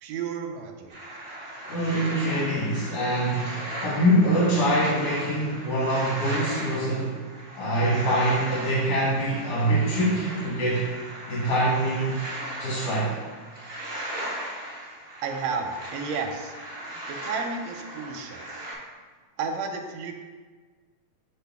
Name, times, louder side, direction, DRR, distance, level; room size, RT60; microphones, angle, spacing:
voice 1, 0.0-1.2 15.2-16.5 17.1-18.5 19.4-20.1, right 5 dB, 80° right, 4 dB, 1.8 m, -32 dB
sound 1, 0.9-18.7, right 1 dB, 60° right, 0.6 m, -37 dB
voice 2, 1.7-7.2 7.5-10.9 11.3-12.2 12.6-13.2 18.5-18.6, right 1 dB, 60° left, -8 dB, 2.3 m, -24 dB
6.7 x 4.2 x 3.4 m, 1.4 s
omnidirectional pair, 3.3 m